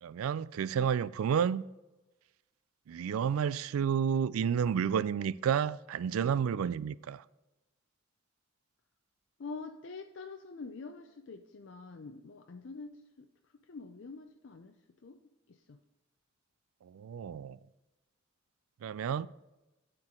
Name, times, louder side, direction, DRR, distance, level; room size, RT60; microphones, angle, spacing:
voice 1, 0.0-1.6 2.9-7.2 16.8-17.6 18.8-19.3, right 7 dB, 90° right, 0.3 m, -31 dB
voice 2, 9.4-13.3 13.7-14.7 15.0-15.2 15.5-15.8, left 4 dB, 60° left, 0.5 m, -45 dB
12.0 x 4.5 x 3.7 m
head